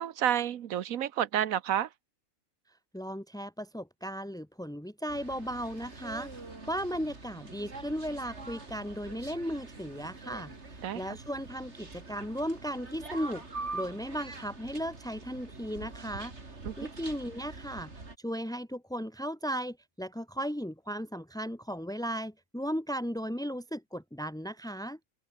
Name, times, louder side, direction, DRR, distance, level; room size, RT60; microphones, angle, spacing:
voice 1, 0.0-1.9 10.8-11.0 16.6-16.9, right 10 dB, 75° right, 1.3 m, -30 dB
voice 2, 2.9-6.4 6.7-25.0, equal, 5° left, 3.2 m, -36 dB
sound 1, 5.1-18.2, right 3 dB, 55° right, 3.6 m, -44 dB
open air
omnidirectional pair, 1.4 m